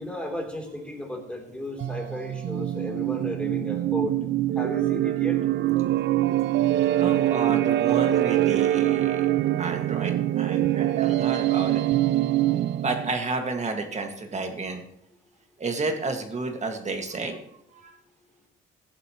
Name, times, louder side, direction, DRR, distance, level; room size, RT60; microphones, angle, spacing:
voice 1, 0.0-4.2 4.5-5.4, left 1 dB, 5° left, 0 dB, 3.3 m, -34 dB
sound 1, 1.8-13.2, right 14 dB, 65° right, 0.4 m, -24 dB
voice 2, 7.0-9.3 9.6-11.8 12.8-14.8 15.6-17.4 17.7-17.9, right 3 dB, 35° right, 4 dB, 2.0 m, -31 dB
15.5 x 10.5 x 3.1 m, 0.76 s
cardioid pair, 90°, 20 cm